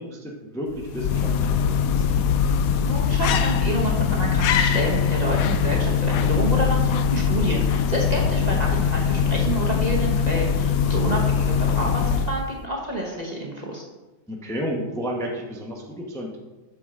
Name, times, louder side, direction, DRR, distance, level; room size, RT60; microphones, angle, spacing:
voice 1, 0.0-2.1 14.3-16.4, equal, 5° left, -1 dB, 0.7 m, -32 dB
sound 1, 0.7-12.6, left 6 dB, 85° left, 0.7 m, -22 dB
voice 2, 2.8-13.8, right 1 dB, 25° right, -2 dB, 1.0 m, -28 dB
8.0 x 7.0 x 3.8 m, 1.2 s
omnidirectional pair, 2.1 m